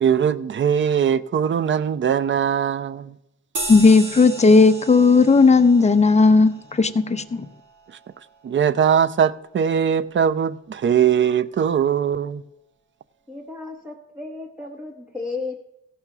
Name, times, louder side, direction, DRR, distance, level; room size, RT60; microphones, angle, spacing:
voice 1, 0.0-3.1 8.4-12.4, right 8 dB, 40° right, 0.5 m, -20 dB
sound 1, 3.5-8.4, right 2 dB, 75° right, 1.6 m, -36 dB
voice 2, 3.7-7.5, left 4 dB, 20° left, 0.6 m, -15 dB
voice 3, 13.3-15.6, left 3 dB, 5° right, 0.9 m, -34 dB
16.0 x 5.7 x 5.9 m
cardioid pair, 125°, 30 cm